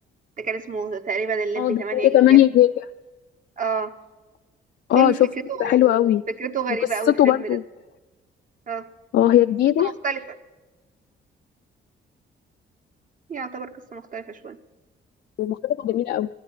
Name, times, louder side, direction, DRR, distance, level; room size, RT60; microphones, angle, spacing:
voice 1, 0.4-2.4 3.6-3.9 4.9-5.2 5.5-7.6 8.7-8.9 9.8-10.4 13.3-14.6, right 5 dB, 40° right, 6 dB, 1.2 m, -29 dB
voice 2, 1.6-2.7 4.9-5.2 5.6-6.2 7.1-7.6 9.1-9.9 15.4-16.3, left 13 dB, 60° left, 7 dB, 0.4 m, -18 dB
12.0 x 10.0 x 8.7 m, 1.2 s
cardioid pair, 90°, 20 cm